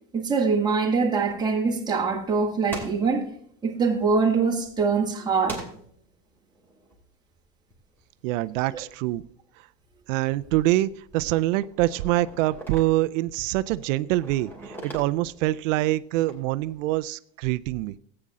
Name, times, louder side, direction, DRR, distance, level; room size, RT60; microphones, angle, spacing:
voice 1, 0.1-3.3 3.6-5.7 8.7-8.8, right 4 dB, 10° right, 2.0 m, -23 dB
sound 1, 1.2-2.3 2.7-5.1 5.5-8.4 8.8-9.5 9.8-17.0, right 1 dB, 5° left, 2.7 m, -44 dB
voice 2, 8.2-9.2 10.1-17.9, right 16 dB, 85° right, 0.6 m, -25 dB
14.5 x 8.8 x 3.7 m
supercardioid pair, 155°, 37 cm